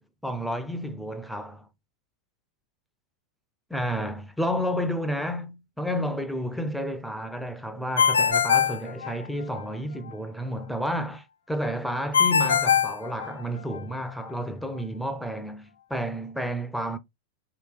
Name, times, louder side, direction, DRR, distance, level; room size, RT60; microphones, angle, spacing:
voice 1, 0.2-1.7 3.7-17.0, equal, ahead, 0.5 m, -31 dB
Ringtone, 8.0-9.6 12.1-13.8, left 7 dB, 75° left, 0.3 m, -22 dB
3.0 x 2.9 x 3.1 m
figure-of-eight pair, 90°, 0 cm